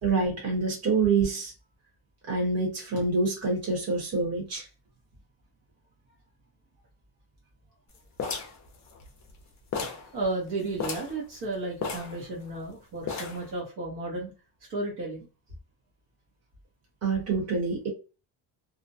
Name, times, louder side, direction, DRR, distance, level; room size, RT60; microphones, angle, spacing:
voice 1, 0.0-1.5 2.3-4.7 17.0-17.9, right 4 dB, 30° right, 1.1 m, -26 dB
sound 1, 8.2-9.4 9.7-10.1 10.4-10.5 10.8-11.2 11.8-12.7 13.1-13.5, left 5 dB, 40° left, 0.5 m, -34 dB
voice 2, 10.1-14.3 14.7-15.2, right 2 dB, 55° right, 1.0 m, -33 dB
2.5 x 2.1 x 2.6 m
cardioid pair, 180°, 47 cm